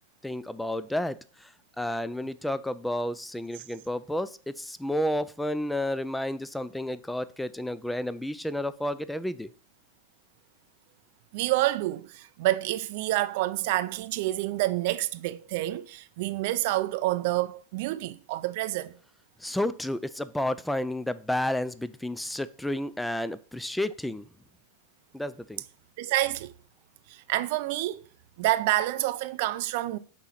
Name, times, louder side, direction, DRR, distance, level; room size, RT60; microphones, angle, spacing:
voice 1, 0.2-9.5 19.4-24.3 25.1-25.6, left 1 dB, 5° left, 0.4 m, -31 dB
voice 2, 11.3-18.9 26.0-26.5 27.1-28.0 28.4-30.0, right 16 dB, 60° right, 0.4 m, -28 dB
6.1 x 3.0 x 5.7 m
hypercardioid pair, 105°, 0 cm